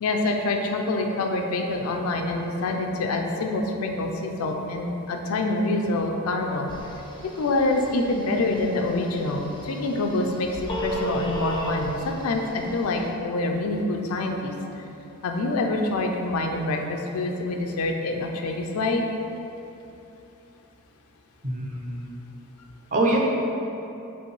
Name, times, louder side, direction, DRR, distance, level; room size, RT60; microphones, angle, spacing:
voice 1, 0.0-6.7 7.2-14.5 15.2-19.0, left 2 dB, 80° left, 3 dB, 0.4 m, -26 dB
Telephone, 6.7-13.1, right 1 dB, 20° left, 0.4 m, -36 dB
voice 2, 21.4-22.2 22.9-23.2, right 2 dB, 35° right, -1 dB, 0.5 m, -25 dB
5.3 x 2.6 x 3.1 m, 2.9 s
head